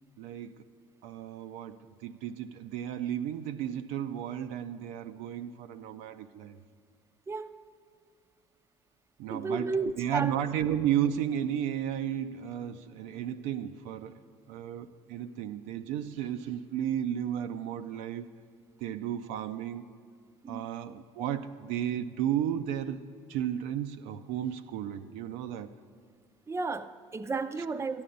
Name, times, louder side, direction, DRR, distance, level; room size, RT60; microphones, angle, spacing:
voice 1, 0.2-0.6 1.0-6.6 9.2-9.7 10.0-14.1 14.5-18.3 18.8-19.9 20.5-23.0 23.3-25.7, right 10 dB, 65° right, 0.5 m, -33 dB
voice 2, 7.3-7.6 9.3-10.3 20.4-20.6 26.5-28.0, right 4 dB, 20° right, 0.6 m, -33 dB
13.5 x 10.5 x 5.3 m
hypercardioid pair, 60°, 14 cm